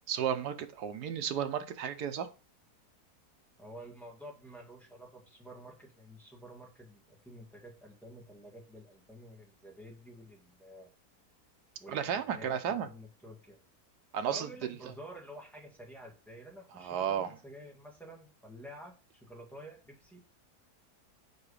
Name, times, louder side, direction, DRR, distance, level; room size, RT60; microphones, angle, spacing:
voice 1, 0.1-2.3 11.9-12.9 14.1-14.5 16.8-17.3, right 8 dB, 90° right, 1.3 m, -33 dB
voice 2, 3.6-10.9 11.8-12.5 12.8-13.6 14.3-20.3, right 1 dB, ahead, 1.9 m, -50 dB
7.0 x 4.7 x 4.9 m
omnidirectional pair, 1.7 m